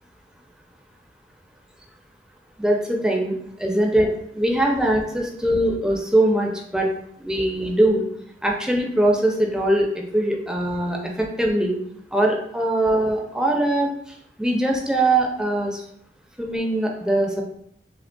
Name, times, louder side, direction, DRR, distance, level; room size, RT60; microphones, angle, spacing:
voice 1, 2.6-6.9 7.2-8.1 8.4-9.9 10.1-11.8 12.1-13.9 14.4-15.8 16.4-17.4, right 1 dB, 5° right, 0 dB, 0.4 m, -21 dB
4.9 x 3.1 x 2.2 m, 0.71 s
head